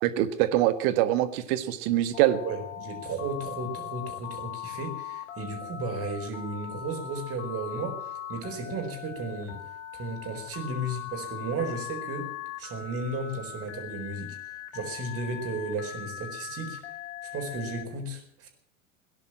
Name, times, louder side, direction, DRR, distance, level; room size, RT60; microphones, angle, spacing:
voice 1, 0.0-2.4, right 13 dB, 50° right, 13 dB, 1.6 m, -24 dB
Telephone, 2.1-17.8, left 10 dB, 65° left, 3.2 m, -40 dB
voice 2, 2.4-8.0 8.3-9.6 9.9-12.3 12.6-14.4 14.7-16.8 17.2-18.5, right 2 dB, 35° right, 4 dB, 4.4 m, -34 dB
18.0 x 10.5 x 7.4 m, 0.68 s
figure-of-eight pair, 80°, 39 cm